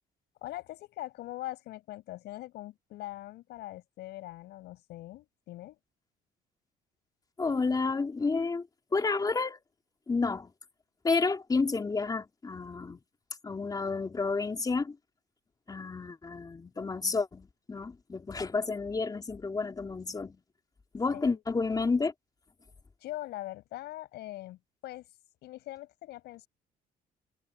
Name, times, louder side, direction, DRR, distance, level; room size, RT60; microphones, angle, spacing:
voice 1, 0.4-5.8 21.1-21.4 23.0-25.1 25.4-26.5, left 16 dB, 80° left, 5.8 m, -42 dB
voice 2, 7.4-8.7 8.9-9.6 10.1-10.5 11.0-13.0 13.4-15.0 15.7-20.4 20.9-22.1, left 4 dB, 20° left, 3.8 m, -30 dB
cardioid pair, 110°, 17 cm